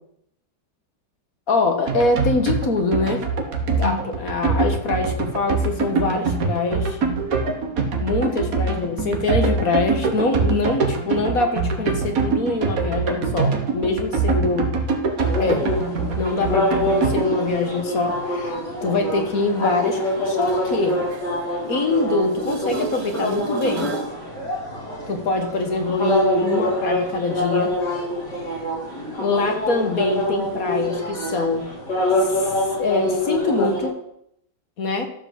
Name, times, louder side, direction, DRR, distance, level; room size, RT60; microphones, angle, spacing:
voice 1, 1.5-3.2 3.8-7.0 8.0-14.7 15.4-15.6 16.2-18.6 18.8-20.0 20.3-21.0 21.7-23.9 25.1-27.7 29.2-31.6 32.2-32.5 32.8-33.9 34.8-35.1, left 3 dB, 55° left, 5 dB, 1.8 m, -24 dB
sound 1, 1.9-17.4, right 4 dB, 55° right, 1.8 m, -23 dB
sound 2, 15.2-33.9, left 1 dB, 75° left, 4.6 m, -25 dB
sound 3, 19.9-22.0 22.3-24.2 29.9-30.0, right 7 dB, 75° right, 1.5 m, -37 dB
13.5 x 4.9 x 7.5 m, 0.75 s
omnidirectional pair, 1.8 m